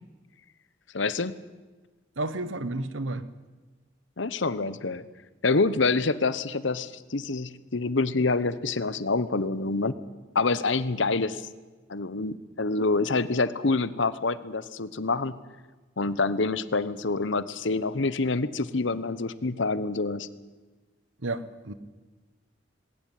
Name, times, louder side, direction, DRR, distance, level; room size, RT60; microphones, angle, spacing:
voice 1, 0.9-1.3 4.2-5.0 5.4-9.9 10.3-11.4 11.9-15.3 16.0-20.3, left 3 dB, 70° left, 16 dB, 1.0 m, -26 dB
voice 2, 2.2-3.3 21.2-21.7, right 2 dB, 80° right, 14 dB, 1.3 m, -31 dB
19.5 x 18.0 x 9.2 m, 1.3 s
head